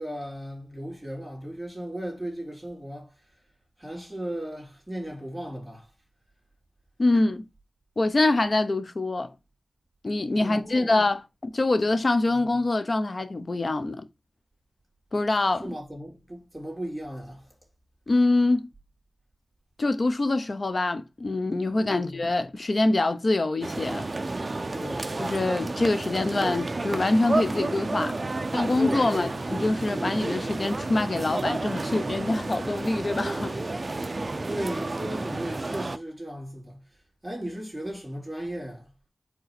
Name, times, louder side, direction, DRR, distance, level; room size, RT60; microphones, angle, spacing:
voice 1, 0.0-3.1 3.8-5.9 10.3-10.9 12.2-12.5 15.6-17.5 21.8-22.2 24.7-25.2 29.0-29.4 34.5-36.8 37.2-38.9, right 1 dB, 10° right, 3.1 m, -36 dB
voice 2, 7.0-7.4 8.0-9.3 10.0-14.1 15.1-15.6 18.1-18.7 19.8-24.0 25.2-28.1 28.5-33.6, left 2 dB, 50° left, 0.9 m, -25 dB
sound 1, 23.6-36.0, right 2 dB, 40° right, 0.6 m, -31 dB
5.3 x 3.8 x 5.9 m
wide cardioid pair, 85°, 0 cm